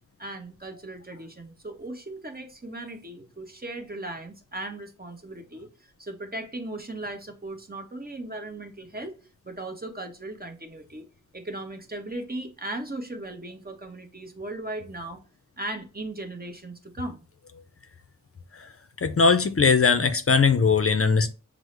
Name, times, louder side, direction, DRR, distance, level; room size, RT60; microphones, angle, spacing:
voice 1, 0.2-9.1 9.4-11.0 11.3-15.2 15.6-17.2, right 2 dB, 30° right, 1.0 m, -37 dB
voice 2, 19.0-21.3, left 5 dB, 45° left, 0.5 m, -20 dB
6.1 x 2.1 x 3.2 m
wide cardioid pair, 65°, 31 cm